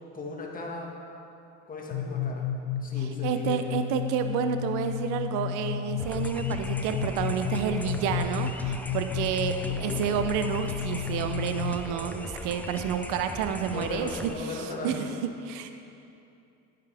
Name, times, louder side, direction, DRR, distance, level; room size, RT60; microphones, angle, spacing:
voice 1, 0.1-0.9 1.7-2.4 2.8-3.8 9.8-10.1 12.5-12.6 13.6-15.1, left 3 dB, 25° left, -1 dB, 1.7 m, -37 dB
sound 1, 1.9-11.7, left 9 dB, 60° left, 0.7 m, -32 dB
voice 2, 3.0-9.5 9.8-15.1 15.5-15.7, right 8 dB, 65° right, 8 dB, 0.7 m, -30 dB
sound 2, 6.0-14.3, left 1 dB, 5° left, 0.4 m, -39 dB
10.5 x 9.5 x 3.4 m, 2.7 s
supercardioid pair, 115°, 33 cm